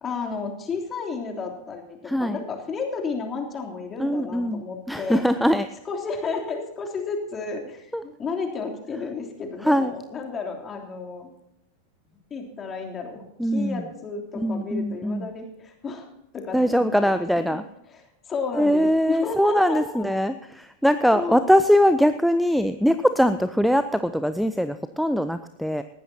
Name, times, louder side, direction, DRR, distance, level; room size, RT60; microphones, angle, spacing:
voice 1, 0.0-5.2 5.8-11.3 12.3-16.1 16.3-17.6 17.9-20.1 21.1-21.3, left 4 dB, 20° left, 2 dB, 3.2 m, -32 dB
voice 2, 2.1-2.4 4.0-4.6 4.9-5.7 7.9-8.0 9.6-9.9 13.4-13.8 14.4-15.3 16.5-17.6 18.5-25.8, equal, ahead, 10 dB, 0.6 m, -21 dB
19.5 x 15.0 x 2.9 m, 0.84 s
figure-of-eight pair, 90°, 0 cm